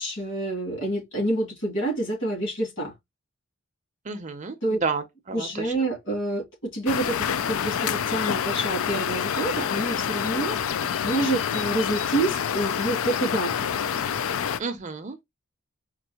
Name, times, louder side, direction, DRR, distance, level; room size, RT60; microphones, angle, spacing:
voice 1, 0.0-2.9 4.6-4.8 5.3-13.7, right 2 dB, 60° left, 2.4 m, -28 dB
voice 2, 4.0-5.7 14.6-15.2, right 4 dB, 35° right, 0.6 m, -31 dB
sound 1, 6.9-14.6, left 8 dB, 85° left, 0.4 m, -27 dB
4.5 x 2.4 x 2.8 m
head